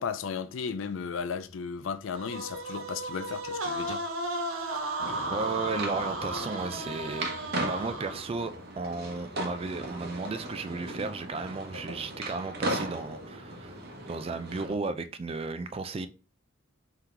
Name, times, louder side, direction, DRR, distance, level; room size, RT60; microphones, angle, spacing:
voice 1, 0.0-4.3, left 6 dB, 70° left, 0.4 m, -35 dB
sound 1, 2.1-8.5, right 1 dB, 85° right, 0.7 m, -35 dB
sound 2, 5.0-14.8, right 1 dB, 55° right, 0.9 m, -37 dB
voice 2, 5.3-7.3 7.6-13.8 14.1-16.1, right 3 dB, 30° right, 0.3 m, -34 dB
3.8 x 2.9 x 3.4 m
head